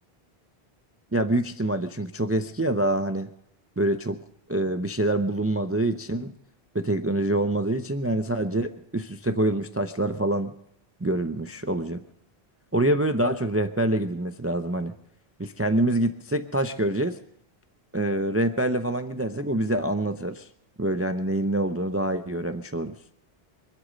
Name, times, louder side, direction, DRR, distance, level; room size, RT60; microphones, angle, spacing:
voice 1, 1.1-3.3 3.8-4.2 4.5-6.3 6.7-10.5 11.0-12.0 12.7-14.9 15.4-17.2 17.9-20.5 20.8-22.9, right 1 dB, 15° right, 8 dB, 0.5 m, -26 dB
25.0 x 8.3 x 6.4 m, 0.77 s
omnidirectional pair, 1.1 m